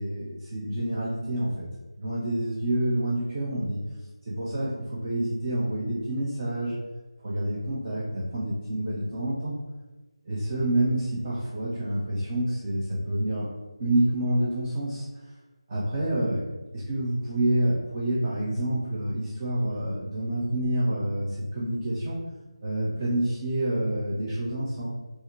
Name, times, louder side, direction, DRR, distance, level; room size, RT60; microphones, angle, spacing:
voice 1, 0.0-1.7 2.0-3.8 4.3-6.7 7.2-9.6 10.3-13.5 13.8-15.0 15.7-16.4 16.7-22.2 22.6-24.9, right 1 dB, 25° right, -7 dB, 0.6 m, -28 dB
5.5 x 2.5 x 2.9 m, 1.2 s
figure-of-eight pair, 170°, 3 cm